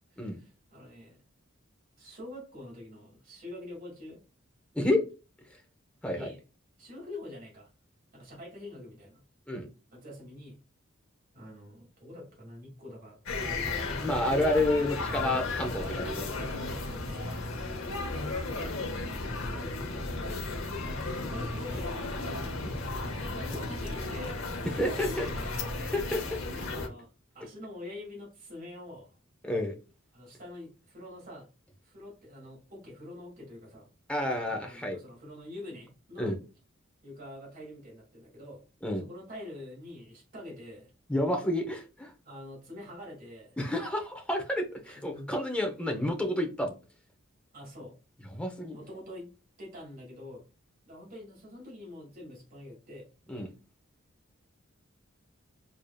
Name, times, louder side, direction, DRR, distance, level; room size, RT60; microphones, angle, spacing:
voice 1, 0.1-1.2 2.0-4.2 6.0-6.4 6.8-7.7 8.1-9.2 9.9-10.6 11.3-14.0 15.1-17.5 18.4-18.7 19.2-20.1 21.1-22.1 23.2-25.8 26.6-27.1 27.3-29.2 30.1-31.5 31.8-33.9 34.5-36.4 37.0-38.6 39.0-40.9 42.3-43.6 44.9-45.3 47.5-48.0 48.7-49.3 49.6-50.4 50.9-53.1 53.4-53.5, left 1 dB, 45° right, -2 dB, 2.1 m, -45 dB
sound 1, 13.3-26.9, left 3 dB, 70° left, 0.9 m, -34 dB
voice 2, 14.0-16.3 23.1-23.5 24.7-25.3 25.8-26.6 29.4-29.7 34.1-35.0 36.2-36.4 38.8-39.0 41.1-42.1 43.6-46.7 48.3-48.8 53.3-53.5, left 1 dB, 5° left, 3 dB, 0.6 m, -30 dB
4.8 x 2.7 x 2.2 m, 0.32 s
head